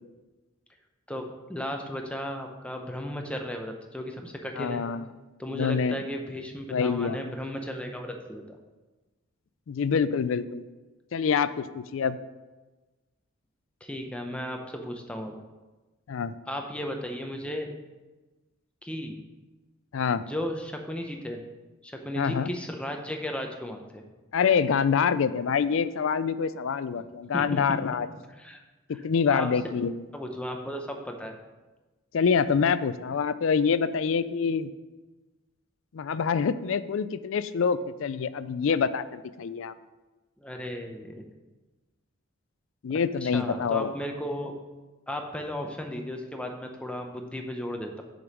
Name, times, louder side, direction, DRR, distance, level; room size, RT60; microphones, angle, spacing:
voice 1, 1.1-4.8 5.4-8.6 13.8-15.4 16.5-17.7 18.8-19.2 20.2-21.4 21.8-24.0 27.0-27.1 27.3-27.8 28.4-28.6 28.9-29.0 29.3-29.5 30.1-31.4 40.4-41.2 43.2-44.5 45.1-48.0, equal, 5° left, 3 dB, 0.7 m, -35 dB
voice 2, 4.6-5.1 5.5-6.0 6.7-7.3 9.7-10.6 11.1-12.2 16.1-16.4 19.9-20.2 22.2-22.5 24.3-28.1 28.9-29.9 32.1-34.7 35.9-39.7 42.8-43.9, left 6 dB, 65° left, 14 dB, 0.4 m, -26 dB
6.9 x 5.1 x 6.0 m, 1.2 s
head